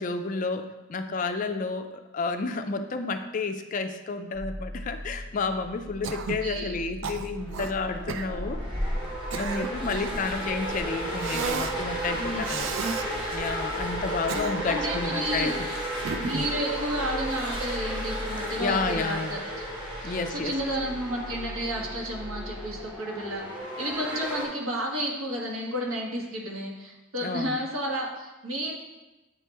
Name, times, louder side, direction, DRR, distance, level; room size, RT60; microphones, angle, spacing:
voice 1, 0.0-1.9 2.1-8.6 9.3-12.7 13.3-15.7 18.6-19.3 20.0-20.5 27.2-27.6, left 4 dB, 40° left, 7 dB, 0.3 m, -31 dB
sound 1, 4.3-22.9, equal, 10° left, 1.6 m, -41 dB
Cough, 6.0-6.5 7.0-7.7 8.1-8.3 9.0-10.2 11.2-11.8 12.4-13.1 14.0-14.9 16.0-16.5, right 5 dB, 60° right, 0.3 m, -33 dB
voice 2, 6.0-6.8 12.1-12.5 14.3-15.5 16.1-19.6 20.0-23.4 23.8-28.7, equal, 85° right, -1 dB, 1.3 m, -32 dB
sound 2, 7.3-24.5, right 1 dB, 20° right, 1.1 m, -34 dB
9.1 x 3.1 x 3.4 m, 1.1 s
head